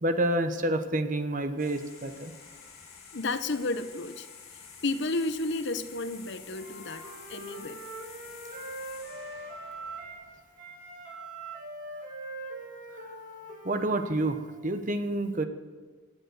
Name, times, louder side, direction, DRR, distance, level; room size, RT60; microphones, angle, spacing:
voice 1, 0.0-2.3 13.6-15.4, right 1 dB, 40° right, 8 dB, 1.0 m, -28 dB
sound 1, 1.6-10.7, left 6 dB, 85° left, 4.8 m, -50 dB
voice 2, 3.1-4.3 4.8-7.8, left 2 dB, 55° left, 12 dB, 0.7 m, -32 dB
Wind instrument woodwind instrument, 6.5-10.3 10.6-14.4, right 2 dB, 60° right, 3.8 m, -42 dB
17.5 x 7.7 x 7.9 m, 1.4 s
head